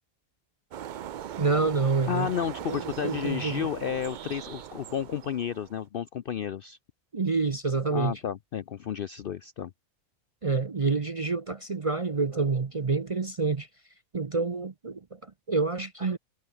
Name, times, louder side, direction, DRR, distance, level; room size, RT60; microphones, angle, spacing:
sound 1, 0.7-5.8, right 10 dB, 75° right, 0.4 m, -40 dB
voice 1, 1.4-2.3 2.7-3.7 7.1-8.2 10.4-13.7 14.1-16.2, right 4 dB, 35° right, 0.6 m, -28 dB
voice 2, 2.1-6.8 7.9-9.7, left 8 dB, 60° left, 0.6 m, -32 dB
omnidirectional pair, 1.4 m